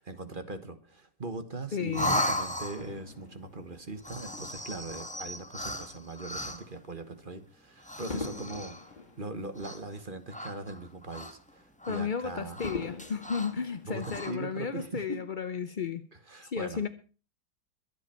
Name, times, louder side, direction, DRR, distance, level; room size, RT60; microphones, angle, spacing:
voice 1, 0.0-8.8 9.2-12.6 13.9-15.2 16.1-16.8, right 2 dB, 30° right, 1.4 m, -40 dB
voice 2, 1.7-2.1 11.8-16.1 16.4-16.9, left 6 dB, 55° left, 0.5 m, -33 dB
sound 1, 1.9-3.1 4.0-6.8 7.8-8.9 9.5-10.0 10.3-11.5 11.8-12.0 12.5-13.6 13.9-14.3, left 1 dB, 5° left, 1.3 m, -36 dB
Fireworks, 2.8-5.4 6.0-6.2 8.1-10.6 11.0-11.1 12.6-14.5 15.2-15.3, left 3 dB, 25° left, 1.7 m, -43 dB
22.5 x 8.7 x 4.4 m
omnidirectional pair, 1.9 m